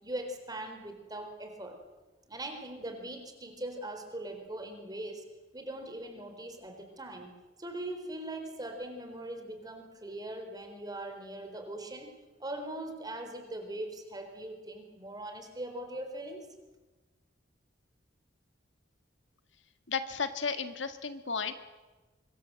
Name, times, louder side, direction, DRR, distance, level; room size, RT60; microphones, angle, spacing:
voice 1, 0.0-1.8 2.3-5.2 5.5-7.3 7.6-12.1 12.4-16.5, right 1 dB, 20° right, 5 dB, 4.1 m, -41 dB
voice 2, 19.9-21.5, left 5 dB, 80° left, 9 dB, 1.8 m, -33 dB
24.5 x 22.5 x 7.7 m, 1.2 s
head